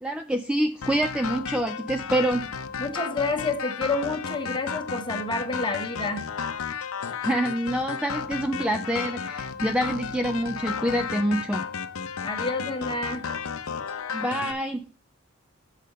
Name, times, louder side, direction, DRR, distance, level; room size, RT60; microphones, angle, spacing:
voice 1, 0.0-2.5 7.2-11.7 14.1-14.8, right 1 dB, 5° right, 6 dB, 0.4 m, -26 dB
sound 1, 0.8-14.5, left 6 dB, 80° left, 0.7 m, -33 dB
voice 2, 2.8-6.3 12.2-13.2, left 2 dB, 25° left, 5 dB, 1.2 m, -29 dB
6.7 x 5.0 x 6.7 m, 0.39 s
head